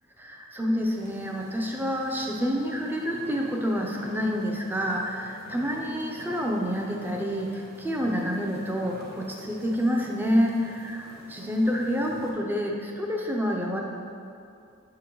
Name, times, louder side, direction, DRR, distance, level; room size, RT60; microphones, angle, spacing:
voice 1, 0.2-13.8, equal, 10° right, 0 dB, 0.5 m, -28 dB
sound 1, 0.9-12.3, equal, 50° right, 0.9 m, -48 dB
6.7 x 3.8 x 4.5 m, 2.6 s
head